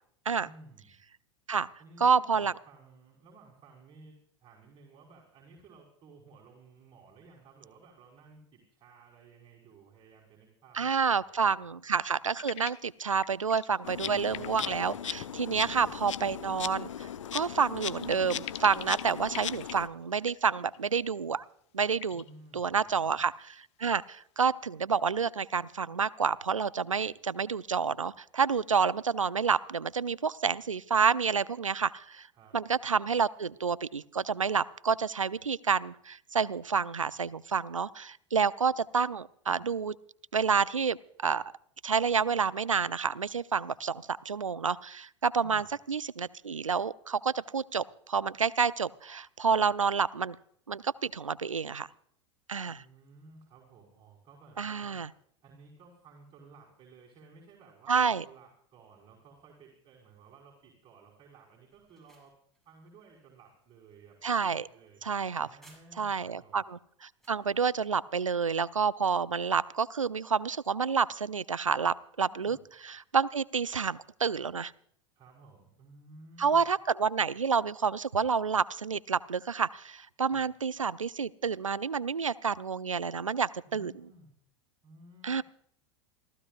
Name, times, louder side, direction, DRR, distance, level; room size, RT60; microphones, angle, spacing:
voice 1, 0.4-1.0 1.8-11.7 13.9-15.0 15.7-16.0 22.1-23.3 32.3-32.6 45.4-45.7 52.7-55.1 55.4-62.4 62.7-64.2 64.4-66.6 72.2-72.6 75.1-76.6 80.2-80.5 83.6-84.3 84.8-85.4, right 3 dB, 30° right, -2 dB, 5.2 m, -56 dB
voice 2, 2.0-2.5 10.8-21.5 21.7-22.2 22.5-23.3 23.8-32.3 32.5-39.9 40.3-41.4 41.8-50.4 50.7-51.9 52.5-52.8 54.6-55.1 57.9-58.2 64.2-64.7 65.0-65.5 66.0-72.6 72.8-74.7 76.4-83.9 85.2-85.4, right 6 dB, 85° right, 20 dB, 0.5 m, -29 dB
sound 1, 12.2-12.9 13.2-13.7 14.0-15.5 17.8-19.8 20.2-20.8 22.0-22.3, left 14 dB, 40° left, 1.1 m, -45 dB
Insect, 13.8-19.9, left 9 dB, 75° left, 0.7 m, -38 dB
sound 2, 61.7-66.3 66.7-67.5, right 1 dB, ahead, 7.7 m, -64 dB
27.5 x 15.0 x 2.5 m, 0.65 s
figure-of-eight pair, 85°, 16 cm